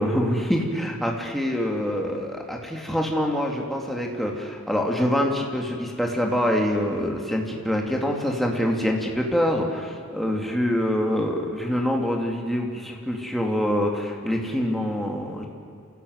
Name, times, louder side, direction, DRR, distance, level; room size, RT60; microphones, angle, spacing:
voice 1, 0.0-15.5, equal, ahead, 0 dB, 2.5 m, -25 dB
27.5 x 16.5 x 8.1 m, 2.5 s
head